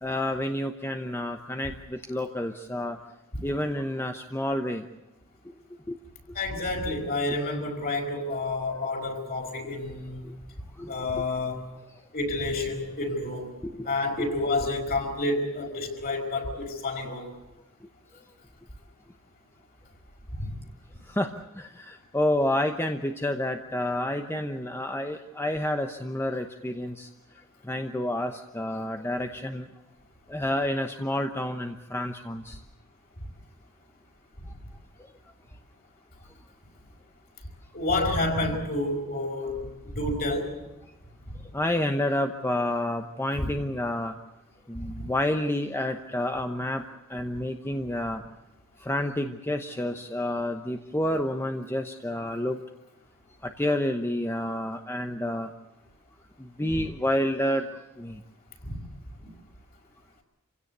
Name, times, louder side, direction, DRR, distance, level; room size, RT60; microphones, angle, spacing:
voice 1, 0.0-3.0 3.4-4.9 5.9-6.0 10.8-11.0 13.6-14.3 21.1-27.1 27.6-29.7 30.3-32.6 41.5-44.1 44.7-46.8 47.1-48.2 48.8-52.6 53.4-55.5 56.4-57.7 58.0-58.2, left 1 dB, 10° left, 5 dB, 1.0 m, -29 dB
voice 2, 6.3-10.3 10.9-11.7 12.1-13.5 13.8-17.3 20.4-20.5 37.7-40.5 41.3-41.4 43.4-43.5 44.8-45.1 56.7-56.8 58.6-58.8, left 2 dB, 45° left, 2 dB, 5.3 m, -29 dB
27.5 x 17.0 x 8.1 m, 1.0 s
head